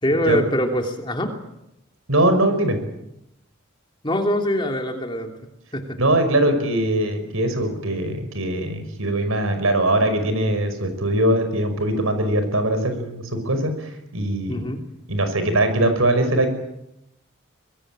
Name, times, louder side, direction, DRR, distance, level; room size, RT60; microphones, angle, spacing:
voice 1, 0.0-1.3 4.0-5.3 5.7-6.0 14.5-14.8, equal, 25° left, 4 dB, 3.1 m, -23 dB
voice 2, 2.1-2.8 6.0-14.6 15.1-16.5, right 1 dB, 90° right, 8 dB, 5.6 m, -21 dB
24.0 x 20.5 x 9.0 m, 0.86 s
head